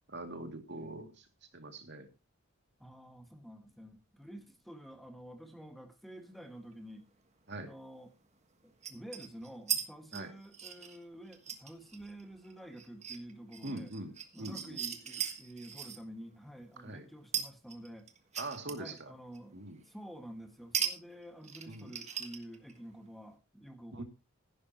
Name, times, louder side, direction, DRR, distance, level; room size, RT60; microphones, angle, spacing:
voice 1, 0.1-1.3 1.5-2.1 7.5-7.7 10.1-10.3 13.6-14.1 14.4-14.8 16.8-17.1 18.4-19.1 19.5-19.8 21.7-21.9 23.9-24.0, right 2 dB, 55° right, 6 dB, 2.4 m, -42 dB
voice 2, 0.7-1.1 2.8-7.1 7.6-8.1 8.6-13.9 14.3-18.1 18.7-24.0, right 1 dB, ahead, 5 dB, 1.7 m, -49 dB
sound 1, 6.7-6.8 8.8-9.8 10.1-16.0 17.3-19.0 19.3-19.4 20.7-20.9 21.2-22.8, right 8 dB, 30° right, 1.5 m, -38 dB
15.5 x 11.0 x 2.9 m, 0.27 s
head